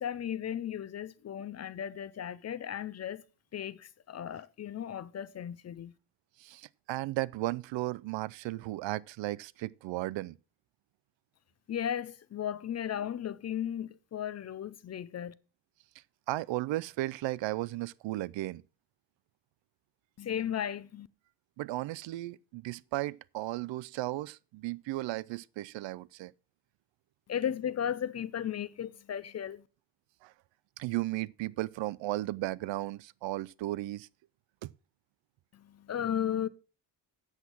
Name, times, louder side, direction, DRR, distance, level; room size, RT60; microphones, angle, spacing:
voice 1, 0.0-3.2 3.5-5.9 11.7-15.3 20.2-21.1 27.3-29.6 35.5-36.5, left 9 dB, 40° left, 0.4 m, -35 dB
voice 2, 6.4-10.4 16.3-18.6 21.6-26.3 30.2-30.3 30.8-34.1 34.6-34.7, right 17 dB, 85° right, 0.5 m, -35 dB
8.1 x 7.1 x 6.0 m
cardioid pair, 150°, 43 cm